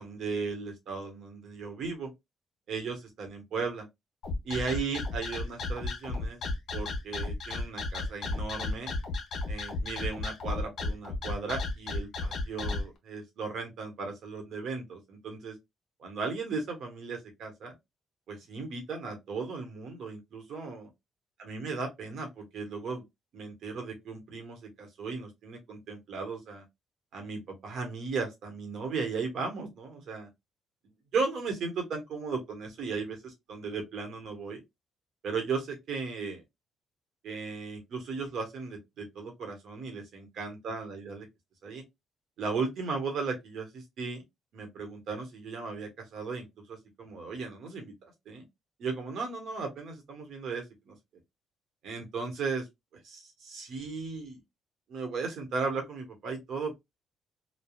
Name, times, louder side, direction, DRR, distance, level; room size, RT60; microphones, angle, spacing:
voice 1, 0.0-2.1 2.7-3.9 4.4-6.4 6.7-8.9 9.5-15.6 16.0-17.7 18.3-20.9 21.4-23.0 23.3-26.6 27.1-30.3 31.1-34.6 35.2-36.4 37.2-41.3 41.6-41.8 42.4-44.2 44.5-47.9 48.3-48.4 48.8-50.9 51.8-52.7 53.0-54.4 54.9-56.7, right 4 dB, 70° right, 1.2 m, -36 dB
sound 1, 4.2-12.8, left 2 dB, 60° left, 0.9 m, -33 dB
3.3 x 2.3 x 2.3 m
cardioid pair, 90°, 0 cm